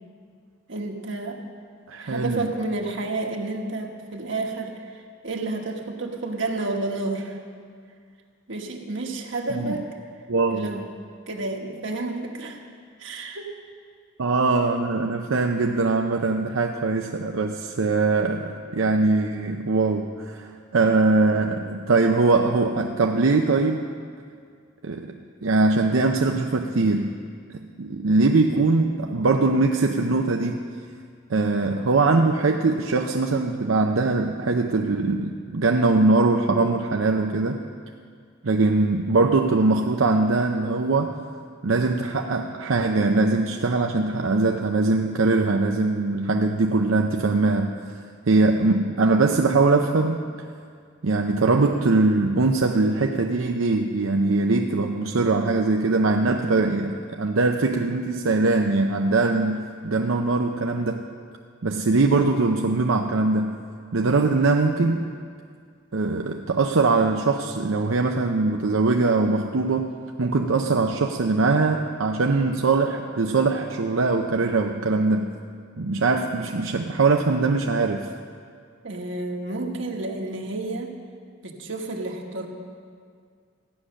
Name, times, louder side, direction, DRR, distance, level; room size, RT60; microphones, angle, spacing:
voice 1, 0.7-1.4 2.0-7.4 8.5-9.9 10.5-10.9 11.3-12.6 13.0-13.5 78.8-80.9 81.4-82.5, right 2 dB, 65° right, 1 dB, 1.4 m, -30 dB
voice 2, 1.9-2.5 9.6-9.7 10.3-10.7 14.2-23.9 24.8-25.2 25.4-27.2 27.5-30.6 31.3-37.6 38.4-41.2 41.6-47.7 48.3-50.2 51.0-61.0 61.6-63.6 63.9-65.1 65.9-69.9 70.2-75.3 75.8-78.1, right 3 dB, 90° right, 3 dB, 0.7 m, -22 dB
14.5 x 9.9 x 6.4 m, 2.1 s
head